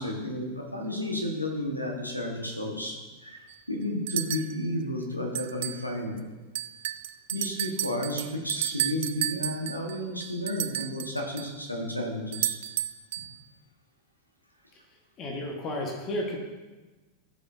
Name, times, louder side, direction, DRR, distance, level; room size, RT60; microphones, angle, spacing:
voice 1, 0.0-3.0 3.2-6.2 7.3-12.6, left 1 dB, 85° left, 1 dB, 1.3 m, -32 dB
sound 1, 3.5-3.6 4.1-4.6 5.3-5.9 6.2-6.3 6.5-11.5 12.3-13.4, right 14 dB, 55° right, 0.3 m, -32 dB
voice 2, 15.2-16.4, left 1 dB, 35° left, 2 dB, 1.3 m, -32 dB
14.5 x 5.3 x 2.7 m, 1.2 s
figure-of-eight pair, 90°, 0 cm